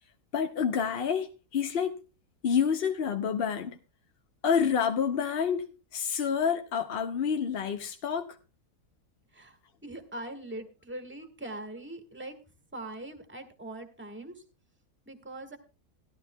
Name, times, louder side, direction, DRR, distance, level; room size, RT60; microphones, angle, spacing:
voice 1, 0.3-2.0 2.4-3.8 4.4-8.4, left 7 dB, 55° left, 0.7 m, -28 dB
voice 2, 9.3-12.4 12.7-14.4 15.0-15.6, right 1 dB, 10° right, 1.4 m, -42 dB
17.0 x 12.0 x 2.2 m
omnidirectional pair, 1.7 m